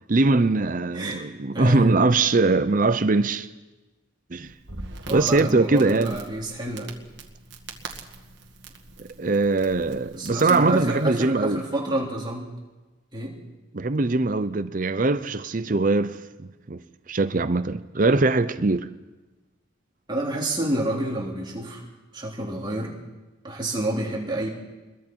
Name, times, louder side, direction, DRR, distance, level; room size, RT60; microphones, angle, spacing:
voice 1, 0.1-3.5 4.3-4.5 5.1-6.2 9.0-11.6 13.7-16.8 17.1-18.9, right 3 dB, 40° right, 0.6 m, -22 dB
voice 2, 1.5-1.9 5.1-6.9 10.1-12.5 13.1-13.4 20.1-21.8 22.1-22.9 23.4-24.5, right 1 dB, 20° right, 3.1 m, -28 dB
Crackle, 4.4-11.1, right 3 dB, 55° right, 1.9 m, -43 dB
28.5 x 22.0 x 4.6 m
head